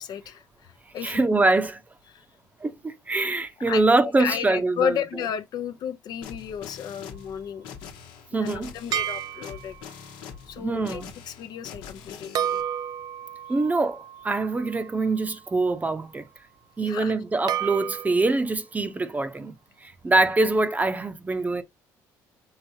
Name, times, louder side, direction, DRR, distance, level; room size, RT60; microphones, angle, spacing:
voice 1, 0.0-1.3 2.1-2.2 3.7-7.6 8.3-9.8 10.5-12.6 16.8-17.1, left 9 dB, 60° left, 0.6 m, -33 dB
voice 2, 1.0-1.8 2.6-5.0 8.3-8.7 10.6-11.1 13.5-16.2 16.8-19.5 19.8-21.6, right 2 dB, 20° right, 0.7 m, -24 dB
sound 1, 6.2-12.6, left 7 dB, 80° left, 1.1 m, -43 dB
sound 2, 8.9-9.9 12.3-15.5 17.5-18.4, right 10 dB, 55° right, 0.4 m, -32 dB
5.8 x 3.3 x 2.7 m
supercardioid pair, 80°, 8 cm